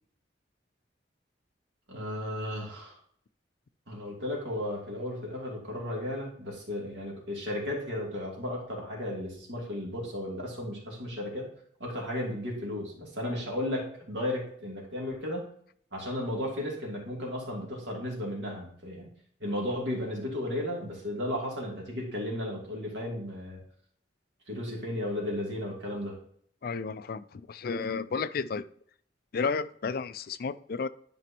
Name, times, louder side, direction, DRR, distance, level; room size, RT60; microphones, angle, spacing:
voice 1, 1.9-2.9 3.9-11.5 11.8-15.5 15.9-19.1 19.4-23.6 24.5-26.2, left 1 dB, 75° right, 2.8 m, -34 dB
voice 2, 26.6-28.6 29.3-30.9, left 5 dB, 55° left, 0.4 m, -32 dB
11.0 x 5.1 x 2.9 m
head